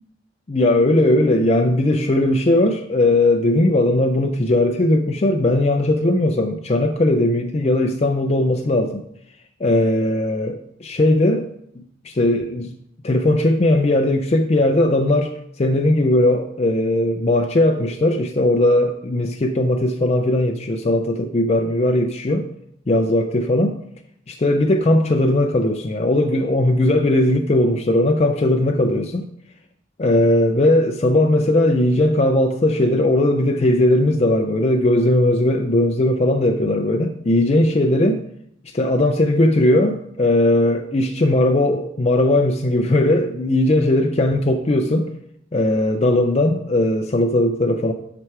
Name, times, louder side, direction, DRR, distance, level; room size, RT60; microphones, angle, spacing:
voice 1, 0.5-9.0 9.6-11.5 12.0-12.7 13.0-22.5 22.9-23.8 24.3-29.3 30.0-38.2 38.6-45.1 45.5-47.9, left 1 dB, 30° left, 4 dB, 0.4 m, -18 dB
6.3 x 5.9 x 4.6 m, 0.73 s
head